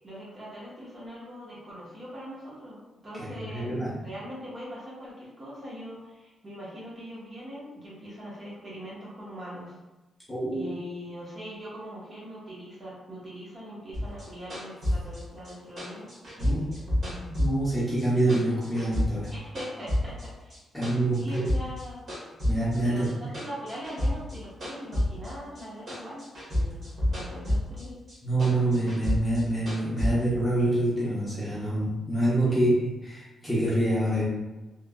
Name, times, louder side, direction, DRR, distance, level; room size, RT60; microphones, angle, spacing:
voice 1, 0.0-2.8 3.0-3.7 4.0-9.8 10.5-16.1 16.4-16.8 19.3-20.6 21.1-22.0 22.8-26.2 26.5-27.9 32.5-32.6, equal, 25° right, -8 dB, 0.9 m, -41 dB
voice 2, 3.2-4.0 10.3-10.7 16.4-16.7 17.1-19.3 20.7-21.4 22.4-23.0 28.2-34.2, right 1 dB, 5° left, -9 dB, 0.7 m, -26 dB
sound 1, 13.9-18.0 18.3-20.2 20.5-21.8 22.1-25.6 25.9-27.8 28.1-30.1, left 1 dB, 45° right, 1.3 m, -29 dB
3.0 x 2.3 x 2.2 m, 1.1 s
wide cardioid pair, 150°, 0 cm